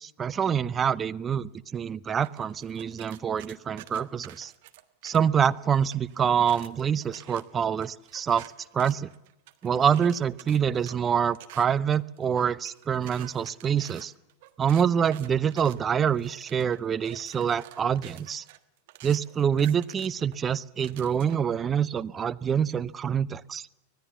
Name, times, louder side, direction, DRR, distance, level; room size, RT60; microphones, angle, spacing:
voice 1, 0.0-4.5 5.0-8.5 8.7-9.1 9.6-14.1 14.6-18.4 19.0-23.7, right 8 dB, 20° right, 15 dB, 0.7 m, -26 dB
sound 1, 2.2-5.5 5.9-21.5, right 16 dB, 50° right, 1.5 m, -49 dB
25.0 x 19.5 x 7.2 m, 0.93 s
figure-of-eight pair, 90°, 0 cm